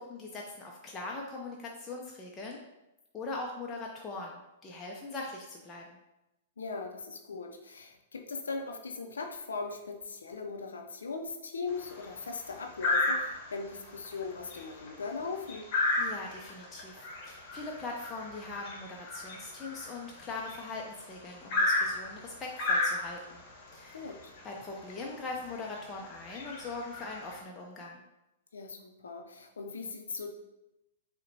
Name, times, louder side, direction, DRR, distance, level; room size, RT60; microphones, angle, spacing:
voice 1, 0.1-2.6 3.1-6.0 16.0-23.4 23.7-24.2 24.4-28.0, left 3 dB, 20° left, -1 dB, 0.5 m, -41 dB
voice 2, 6.6-15.7 23.9-24.3 28.5-30.3, left 4 dB, 75° left, 3 dB, 0.5 m, -39 dB
sound 1, 11.7-12.1 12.8-13.6 14.0-14.2 14.5-20.8 21.5-23.4 24.4-24.5 24.9-25.0 25.6-25.8 26.2-27.4, left 2 dB, 45° left, 0.9 m, -32 dB
6.4 x 2.1 x 2.7 m, 0.93 s
figure-of-eight pair, 105°, 0 cm